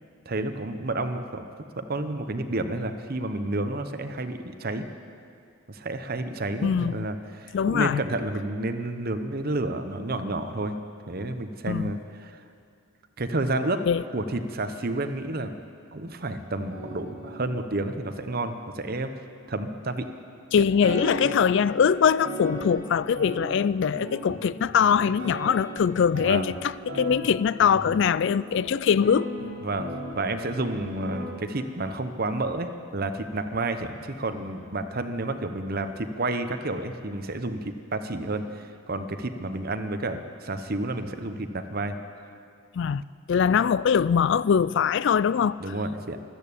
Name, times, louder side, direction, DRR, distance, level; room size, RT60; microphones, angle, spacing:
voice 1, 0.3-1.4 1.8-4.9 5.7-10.8 11.1-12.4 13.2-13.8 14.1-15.5 15.9-19.1 19.5-20.1 26.2-26.5 29.6-29.9 30.1-42.0 45.6-46.2, right 2 dB, 45° right, 0.8 m, -30 dB
voice 2, 6.6-7.1 7.5-8.0 11.7-11.9 13.9-14.0 20.5-29.3 42.8-43.0 43.3-45.6, left 7 dB, 55° left, 0.3 m, -22 dB
sound 1, 16.5-20.0 20.8-31.2, right 1 dB, 65° right, 4.9 m, -38 dB
13.5 x 12.5 x 8.5 m
head